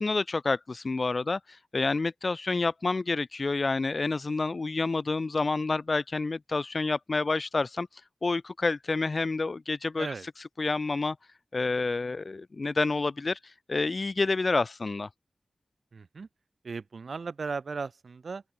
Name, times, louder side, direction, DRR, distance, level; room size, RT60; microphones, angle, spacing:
voice 1, 0.0-7.9 8.2-10.1 10.6-11.2 11.5-15.1, left 3 dB, 50° left, 0.7 m, -28 dB
voice 2, 15.9-16.3 16.6-18.4, right 4 dB, 75° right, 5.3 m, -36 dB
open air
wide cardioid pair, 85°, 0 cm